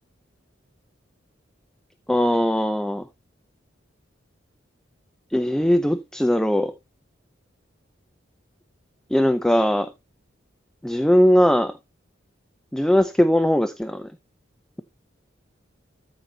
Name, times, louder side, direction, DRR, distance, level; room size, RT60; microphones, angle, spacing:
voice 1, 2.1-3.1 5.3-6.7 9.1-9.9 10.8-11.8 12.7-14.1, equal, 5° left, 0.4 m, -20 dB
13.5 x 5.8 x 2.8 m
head